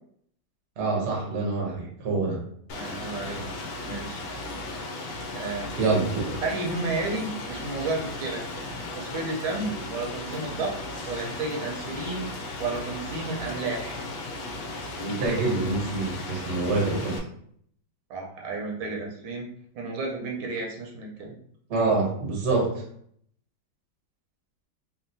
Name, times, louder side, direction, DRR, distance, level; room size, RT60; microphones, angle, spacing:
voice 1, 0.8-2.4 5.8-6.2 15.0-17.2 21.7-22.8, right 3 dB, 55° right, -2 dB, 0.7 m, -26 dB
Rain, 2.7-17.2, left 2 dB, 90° left, 1.4 m, -36 dB
voice 2, 2.7-3.4 3.8-4.2 5.3-5.7 6.4-8.4 8.9-10.8 11.1-12.3 12.6-14.0 18.1-19.5 19.7-21.3, right 3 dB, 75° right, 0 dB, 1.3 m, -32 dB
3.6 x 2.1 x 2.6 m, 0.65 s
omnidirectional pair, 2.2 m